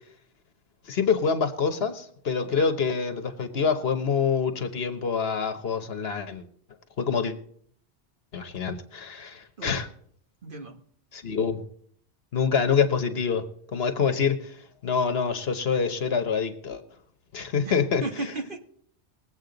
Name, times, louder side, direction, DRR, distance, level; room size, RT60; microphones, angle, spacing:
voice 1, 0.9-6.4 7.0-7.3 8.3-9.9 11.1-11.6 12.3-13.5 13.7-14.5 14.8-16.8 17.3-18.0, left 6 dB, 60° left, 9 dB, 1.2 m, -26 dB
voice 2, 10.4-10.8 17.6-18.6, right 3 dB, 50° right, 4 dB, 1.5 m, -36 dB
20.5 x 8.1 x 3.9 m, 0.63 s
omnidirectional pair, 1.2 m